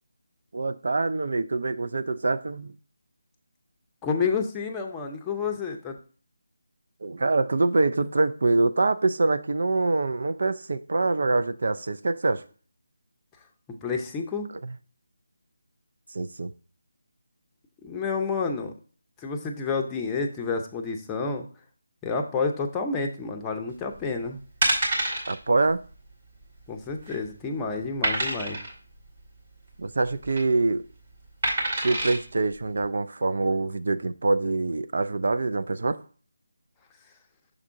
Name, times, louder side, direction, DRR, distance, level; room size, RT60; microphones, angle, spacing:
voice 1, 0.5-2.7 7.0-12.4 14.6-14.7 16.1-16.5 25.3-25.8 29.8-30.8 31.8-36.0, right 3 dB, 60° right, 12 dB, 0.4 m, -25 dB
voice 2, 4.0-6.0 13.8-14.5 17.8-18.7 19.2-21.5 22.0-24.4 26.7-28.6, left 4 dB, 15° left, 3 dB, 0.6 m, -29 dB
sound 1, 24.0-24.1 24.6-25.3 25.7-25.9 26.1-26.2 26.8-27.3 28.0-28.7 30.0-30.4 31.4-32.2 32.8-32.9, right 1 dB, 45° right, 2.3 m, -26 dB
6.5 x 3.6 x 4.6 m, 0.40 s
figure-of-eight pair, 160°, 0 cm